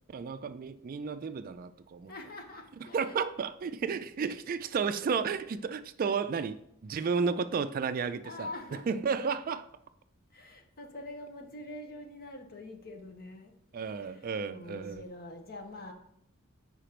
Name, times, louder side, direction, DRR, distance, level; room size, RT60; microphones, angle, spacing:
voice 1, 0.1-2.1 2.9-9.7 13.7-15.0, right 5 dB, 40° right, 0.3 m, -32 dB
voice 2, 2.1-3.2 8.2-8.8 10.3-13.5 14.1-15.9, left 2 dB, 45° left, 1.0 m, -45 dB
4.9 x 4.4 x 5.0 m
head